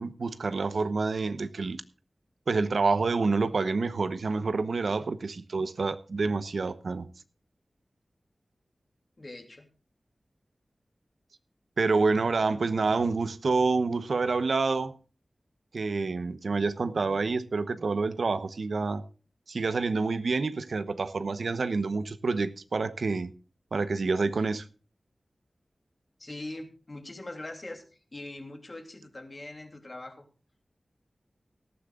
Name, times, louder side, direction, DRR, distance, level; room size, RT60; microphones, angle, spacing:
voice 1, 0.0-1.8 2.5-7.1 11.8-14.9 15.7-19.0 19.5-23.3 23.7-24.6, right 4 dB, 80° right, 1.0 m, -28 dB
voice 2, 9.2-9.6 26.2-27.8 28.1-30.3, left 2 dB, 40° left, 3.1 m, -42 dB
18.5 x 13.5 x 2.5 m
wide cardioid pair, 95°, 0 cm